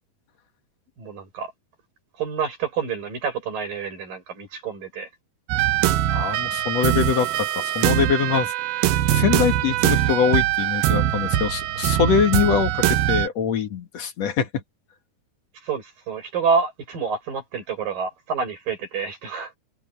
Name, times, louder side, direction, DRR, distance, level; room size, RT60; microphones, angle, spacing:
voice 1, 1.0-1.5 2.2-5.1 15.6-19.5, right 5 dB, 60° right, 7.9 m, -28 dB
sound 1, 5.5-13.3, right 13 dB, 75° right, 2.8 m, -22 dB
voice 2, 6.1-8.5 8.9-14.6, left 7 dB, 50° left, 2.4 m, -23 dB
omnidirectional pair, 4.5 m